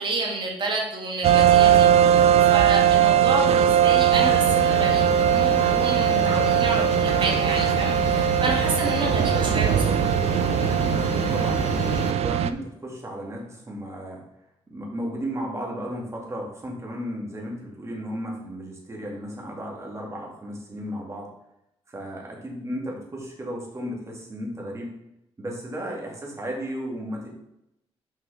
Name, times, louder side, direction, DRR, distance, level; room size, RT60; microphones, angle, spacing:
voice 1, 0.0-9.8, right 2 dB, 50° right, 0 dB, 2.0 m, -29 dB
sound 1, 1.2-12.5, right 10 dB, 75° right, 0.4 m, -20 dB
sound 2, 4.1-12.1, left 8 dB, 75° left, 0.6 m, -31 dB
voice 2, 10.8-14.2 14.7-21.3 21.9-24.9 25.4-27.3, equal, 25° right, -1 dB, 2.4 m, -34 dB
6.0 x 5.6 x 5.0 m, 0.82 s
cardioid pair, 105°, 11 cm